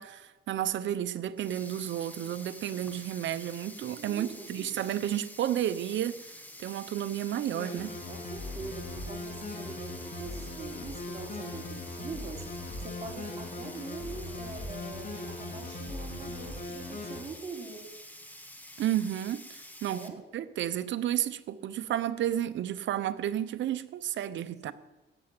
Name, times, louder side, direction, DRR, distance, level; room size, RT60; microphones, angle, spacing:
voice 1, 0.0-6.3 6.6-7.9 18.8-24.7, right 11 dB, 70° right, 0.9 m, -32 dB
Sink (filling or washing), 1.2-20.1, left 1 dB, 10° left, 1.7 m, -48 dB
voice 2, 4.0-4.8 8.1-12.4 12.8-17.8 19.8-20.2 24.7-24.8, right 4 dB, 35° right, 3.9 m, -43 dB
sound 1, 7.5-17.2, left 2 dB, 50° left, 4.7 m, -40 dB
14.0 x 7.8 x 8.9 m
cardioid pair, 90°, 20 cm